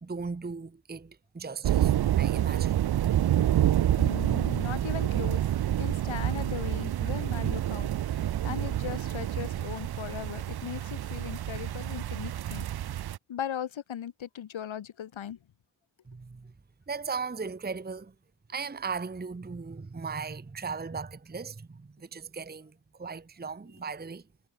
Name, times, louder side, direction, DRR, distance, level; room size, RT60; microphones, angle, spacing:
voice 1, 0.0-2.8 16.1-16.5 16.9-18.1 18.5-22.7 23.0-24.2, right 5 dB, 20° right, 0.9 m, -37 dB
sound 1, 1.6-13.2, right 12 dB, 55° right, 0.5 m, -28 dB
voice 2, 4.0-5.4 5.7-15.4, left 9 dB, 75° left, 1.1 m, -38 dB
cardioid pair, 40°, 47 cm